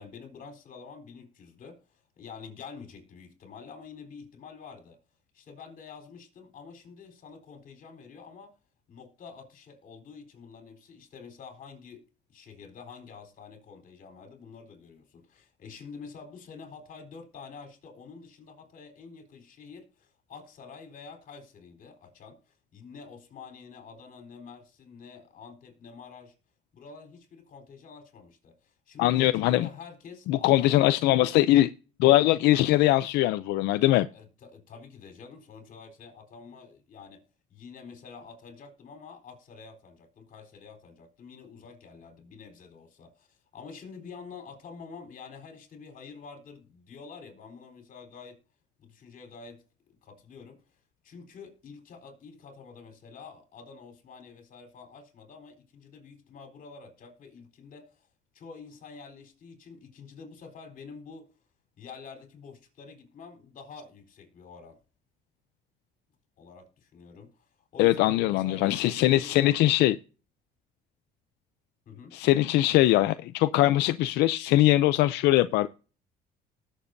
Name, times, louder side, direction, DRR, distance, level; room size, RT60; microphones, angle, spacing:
voice 1, 0.0-5.0 5.3-8.5 8.9-26.3 26.7-30.8 34.1-37.2 37.5-48.4 48.8-49.6 50.0-50.6 51.0-58.1 58.3-61.3 61.8-64.8 66.4-67.5 67.7-69.4 71.9-72.2, left 5 dB, 55° left, 4.1 m, -47 dB
voice 2, 29.0-29.7 30.3-31.7 32.0-34.1 67.8-70.0 72.1-75.7, left 15 dB, 85° left, 0.5 m, -22 dB
19.5 x 7.2 x 2.7 m
cardioid pair, 110°, 17 cm